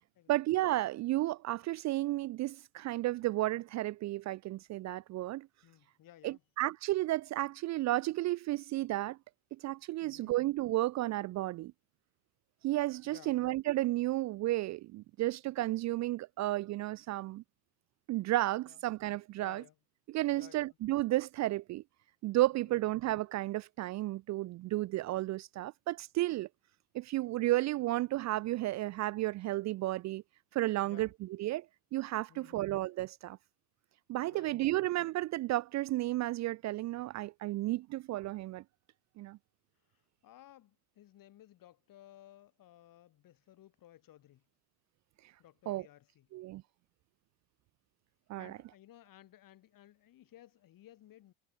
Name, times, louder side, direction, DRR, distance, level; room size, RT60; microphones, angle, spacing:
voice 1, 0.3-5.5 6.2-9.2 9.6-11.7 12.6-17.4 18.1-19.6 20.1-21.8 22.2-26.5 26.9-30.2 30.5-31.1 31.4-31.7 31.9-33.4 34.1-38.6 39.2-39.4 45.7-45.9 46.3-46.6 48.3-48.6, right 16 dB, 40° right, 0.5 m, -33 dB
voice 2, 5.6-6.4 10.0-10.3 13.0-13.4 18.7-18.8 19.4-19.8 20.3-20.8 22.5-22.9 30.8-31.1 32.3-32.7 34.2-34.9 39.9-44.4 45.4-46.3 48.4-51.3, left 13 dB, 50° left, 4.9 m, -58 dB
supercardioid pair, 110°, 42 cm